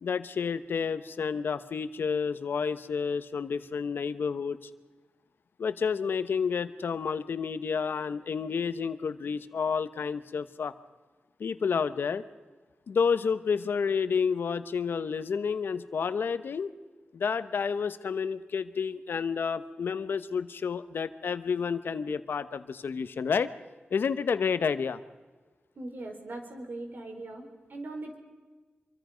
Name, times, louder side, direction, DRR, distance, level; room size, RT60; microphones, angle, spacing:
voice 1, 0.0-4.7 5.6-10.7 11.4-12.2 12.9-16.7 17.1-23.5 23.9-25.0, left 6 dB, 85° left, 12 dB, 1.1 m, -30 dB
voice 2, 25.8-28.2, right 2 dB, 65° right, 4 dB, 4.6 m, -40 dB
26.5 x 24.0 x 5.2 m, 1.3 s
wide cardioid pair, 90°, 4 cm